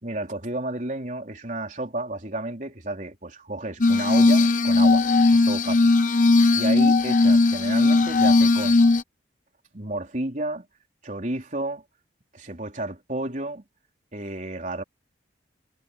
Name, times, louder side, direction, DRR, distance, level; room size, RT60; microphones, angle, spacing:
voice 1, 0.0-5.9 6.5-8.8 9.7-10.7 11.0-11.8 12.3-13.6 14.1-14.8, right 2 dB, 45° right, 4.0 m, -32 dB
Glass, 3.8-9.0, left 3 dB, 45° left, 1.0 m, -18 dB
head